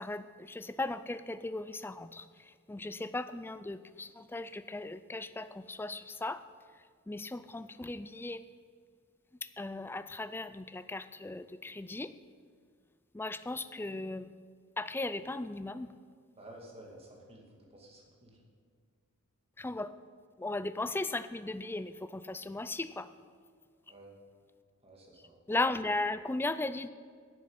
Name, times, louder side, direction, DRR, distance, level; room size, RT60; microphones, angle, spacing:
voice 1, 0.0-6.4 7.1-8.4 9.4-12.1 13.1-14.3 14.8-15.9 19.6-19.9 20.4-23.1 25.5-26.9, left 2 dB, 10° left, 13 dB, 0.3 m, -37 dB
voice 2, 16.4-18.4 23.9-24.1 24.8-25.4, right 1 dB, 25° right, -1 dB, 2.1 m, -52 dB
10.5 x 7.2 x 7.9 m, 2.1 s
head